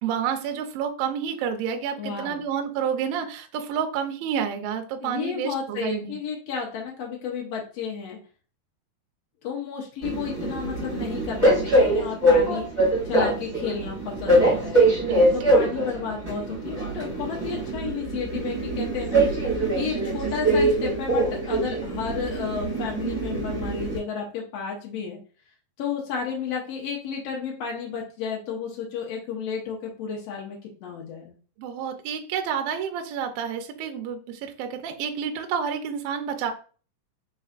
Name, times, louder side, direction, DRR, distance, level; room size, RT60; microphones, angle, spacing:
voice 1, 0.0-6.2 15.0-15.3 31.6-36.5, right 7 dB, 80° right, 6 dB, 2.2 m, -29 dB
voice 2, 2.0-2.4 5.0-8.2 9.4-12.7 13.0-14.8 15.3-19.2 19.7-25.2 25.8-31.3, left 6 dB, 85° left, -1 dB, 1.4 m, -32 dB
Train, 10.0-24.0, right 1 dB, 15° right, 1.4 m, -23 dB
5.4 x 4.0 x 2.4 m, 0.38 s
omnidirectional pair, 4.5 m